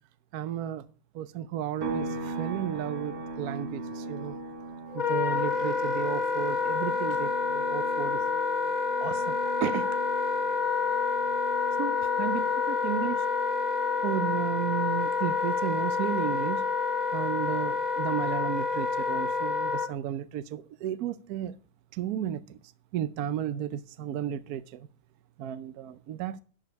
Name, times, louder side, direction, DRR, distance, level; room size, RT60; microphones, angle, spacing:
voice 1, 0.3-0.9 1.1-4.4 4.9-8.2 9.0-10.0 11.8-13.3 14.0-16.7 17.1-21.6 21.9-22.6 22.9-24.9 25.4-26.4, right 10 dB, 70° right, 0.9 m, -33 dB
sound 1, 1.8-15.4 15.7-17.9, right 2 dB, 40° right, 1.2 m, -41 dB
Wind instrument woodwind instrument, 4.9-19.9, left 5 dB, 50° left, 0.5 m, -28 dB
11.5 x 5.1 x 5.2 m
omnidirectional pair, 2.2 m